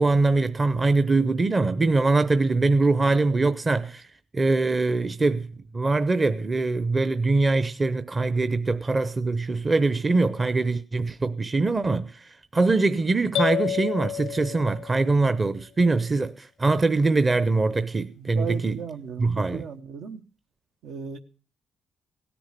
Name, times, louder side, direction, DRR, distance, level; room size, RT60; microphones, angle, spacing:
voice 1, 0.0-4.1 4.3-5.5 5.7-18.9 19.2-19.7, right 3 dB, 25° right, 0.7 m, -23 dB
sound 1, 13.3-15.2, left 10 dB, 85° left, 0.8 m, -29 dB
voice 2, 18.3-20.2 20.8-21.2, right 7 dB, 80° right, 1.1 m, -35 dB
17.5 x 10.0 x 6.6 m
cardioid pair, 90°, 0 cm